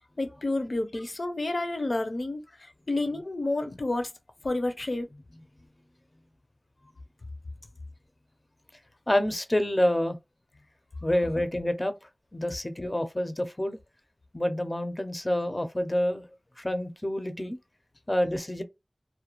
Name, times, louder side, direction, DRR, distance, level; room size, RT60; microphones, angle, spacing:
voice 1, 0.2-4.1 4.4-5.1, left 2 dB, 80° left, 0.6 m, -30 dB
voice 2, 9.1-10.2 11.0-11.9 12.3-13.8 14.3-16.3 16.6-17.6 18.1-18.6, left 1 dB, 30° left, 0.5 m, -27 dB
2.4 x 2.2 x 2.9 m
wide cardioid pair, 55°, 0 cm